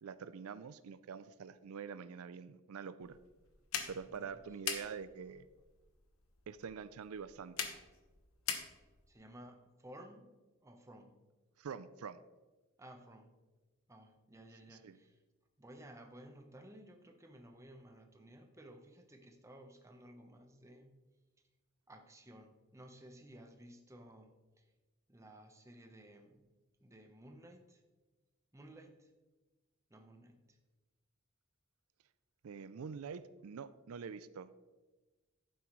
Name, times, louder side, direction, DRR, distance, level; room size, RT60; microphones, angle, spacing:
voice 1, 0.0-3.2 3.9-5.5 6.5-7.7 11.6-12.2 14.7-15.0 32.4-34.5, right 6 dB, 85° right, 14 dB, 0.4 m, -46 dB
sound 1, 3.0-9.1, left 7 dB, 80° left, 1.3 m, -44 dB
voice 2, 4.1-4.4 9.1-10.3 10.6-11.2 12.8-13.3 13.9-15.2 15.6-20.9 21.9-24.6 25.1-26.4 26.8-27.8 28.5-29.1 29.9-30.6, right 1 dB, 15° right, 4 dB, 1.0 m, -56 dB
11.5 x 9.4 x 3.1 m, 1.2 s
head